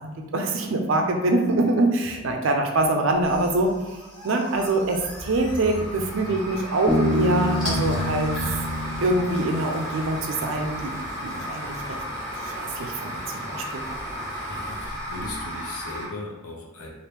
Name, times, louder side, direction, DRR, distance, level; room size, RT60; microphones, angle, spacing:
voice 1, 0.0-3.7 4.2-8.3 9.0-10.9 11.2-12.0 12.4-13.9, right 2 dB, 60° right, 3 dB, 0.4 m, -24 dB
sound 1, 3.1-16.1, equal, 20° left, 1.0 m, -34 dB
Bass guitar, 6.9-10.4, equal, 10° right, 0.6 m, -27 dB
Fire, 7.1-14.9, equal, 45° left, 1.1 m, -42 dB
voice 2, 14.5-16.9, left 2 dB, 75° left, -1 dB, 0.7 m, -37 dB
3.0 x 2.5 x 3.3 m, 1.1 s
head